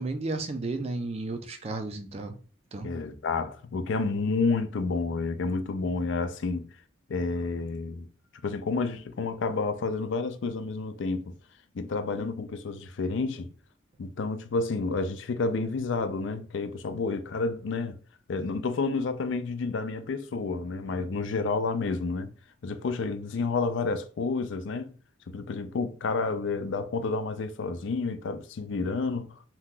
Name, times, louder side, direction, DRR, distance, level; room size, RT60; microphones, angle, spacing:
voice 1, 0.0-2.4 2.7-2.9, right 2 dB, 30° right, 0.4 m, -33 dB
voice 2, 2.8-6.7 7.1-8.1 8.4-11.3 11.7-13.5 14.0-18.0 18.3-22.3 22.6-24.9 25.3-29.3, left 4 dB, 70° left, 0.4 m, -30 dB
2.8 x 2.2 x 3.7 m
head